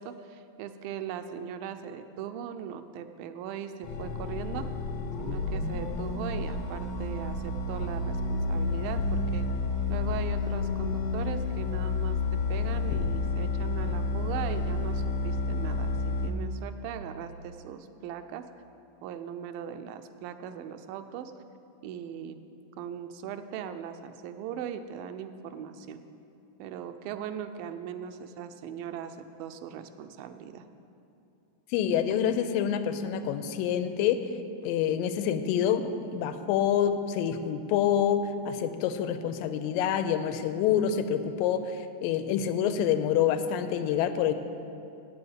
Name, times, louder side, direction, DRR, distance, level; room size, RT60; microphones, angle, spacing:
voice 1, 0.0-4.7 5.2-9.5 9.9-18.5 19.0-21.3 21.8-22.5 22.8-26.0 26.6-30.7, right 8 dB, 85° right, 8 dB, 2.3 m, -39 dB
sound 1, 3.8-16.3, left 3 dB, 60° left, 2.0 m, -30 dB
voice 2, 31.7-34.3 34.6-44.3, left 9 dB, 85° left, 9 dB, 2.3 m, -27 dB
8.6 x 7.6 x 8.0 m, 2.8 s
omnidirectional pair, 4.0 m